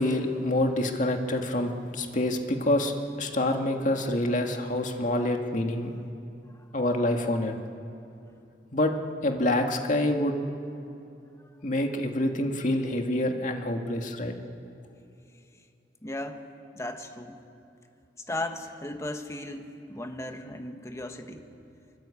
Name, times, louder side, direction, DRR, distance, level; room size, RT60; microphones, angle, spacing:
voice 1, 0.0-2.9 3.2-5.9 6.7-7.5 8.7-8.9 9.2-10.4 11.6-14.3, left 1 dB, 45° left, 3 dB, 2.1 m, -26 dB
voice 2, 16.0-16.4 16.7-17.4 18.3-21.5, left 1 dB, 15° left, 5 dB, 1.6 m, -36 dB
24.5 x 23.5 x 8.6 m, 2.8 s
head